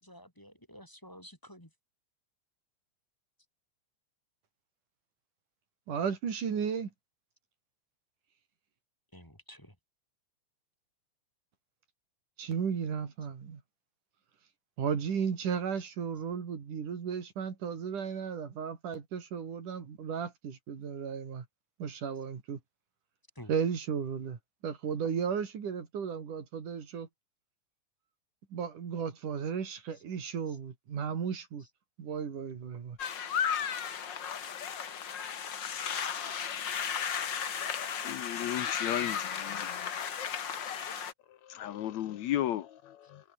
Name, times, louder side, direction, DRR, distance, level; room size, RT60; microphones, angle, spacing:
voice 1, 0.0-1.7 9.1-9.7 16.1-16.2 22.1-22.2 23.3-23.6 29.9-30.0 30.5-30.6 31.6-31.7, equal, 5° left, 5.1 m, -52 dB
voice 2, 5.9-6.9 12.4-13.6 14.8-21.5 21.8-22.6 23.5-27.1 28.5-31.7 32.0-33.0, right 7 dB, 90° right, 4.8 m, -34 dB
sound 1, 33.0-41.1, left 7 dB, 45° left, 1.9 m, -34 dB
voice 3, 38.0-39.7 41.5-43.2, left 12 dB, 70° left, 2.2 m, -34 dB
omnidirectional pair, 3.5 m